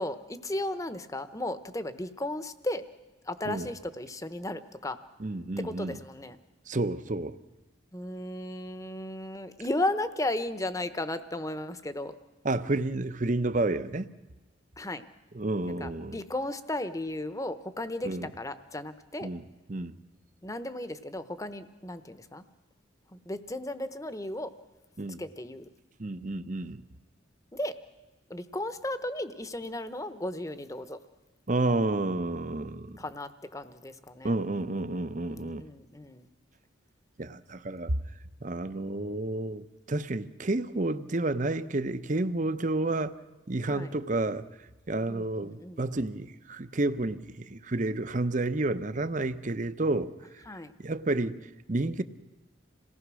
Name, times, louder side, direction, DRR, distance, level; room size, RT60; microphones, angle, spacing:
voice 1, 0.0-2.8 3.2-5.0 5.6-6.4 7.9-12.1 14.8-15.0 15.6-19.3 20.4-22.4 23.1-24.5 25.2-25.7 27.5-27.8 28.3-31.0 33.0-34.4 35.3-36.3 43.6-43.9 45.1-45.9 50.5-50.7, left 1 dB, 15° left, 0.9 m, -35 dB
voice 2, 5.2-6.0 6.7-7.4 12.4-14.1 15.3-16.2 18.0-18.3 19.2-19.4 19.7-19.9 25.0-25.2 26.0-26.8 31.5-33.0 34.2-35.6 37.2-37.9 38.4-43.1 43.5-44.5 44.9-50.4 50.8-51.4 51.7-52.0, right 2 dB, 40° right, 0.8 m, -30 dB
27.5 x 18.5 x 6.3 m
head